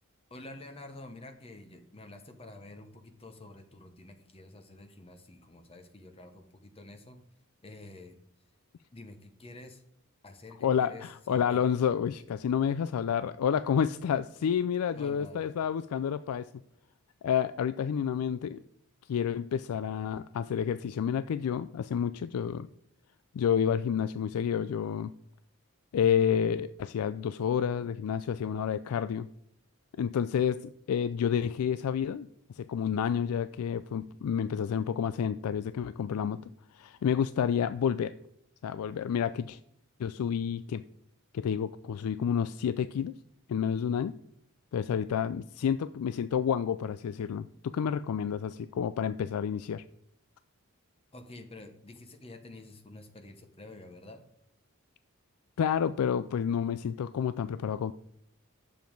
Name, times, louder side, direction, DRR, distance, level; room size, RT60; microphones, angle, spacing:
voice 1, 0.3-7.2 7.6-8.2 8.9-9.8 10.2-11.7 14.9-15.5 51.1-54.2, left 2 dB, 25° left, 6 dB, 0.8 m, -48 dB
voice 2, 10.6-16.5 17.2-18.6 19.1-22.7 23.3-25.1 25.9-29.3 30.0-30.6 30.9-32.3 32.6-36.4 36.7-38.1 38.6-39.6 40.0-40.8 41.3-43.1 43.5-44.2 44.7-49.8 55.6-57.9, left 8 dB, 90° left, 14 dB, 0.3 m, -29 dB
9.2 x 7.2 x 4.6 m, 0.74 s
head